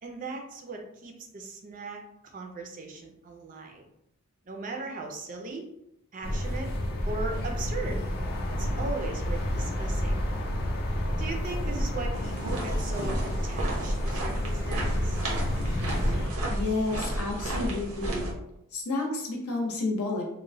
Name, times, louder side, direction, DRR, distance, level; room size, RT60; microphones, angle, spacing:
voice 1, 0.0-3.8 4.5-5.6 6.1-6.7 7.1-8.0 8.6-10.2 11.2-15.2, right 3 dB, 35° right, 2 dB, 0.4 m, -38 dB
sound 1, 6.2-16.3, equal, 45° left, 0.4 m, -30 dB
sound 2, 12.1-18.3, right 1 dB, 85° right, 0.8 m, -32 dB
voice 2, 16.5-18.3 18.7-20.2, left 2 dB, 85° left, 0 dB, 0.7 m, -30 dB
2.9 x 2.1 x 2.6 m, 0.81 s
head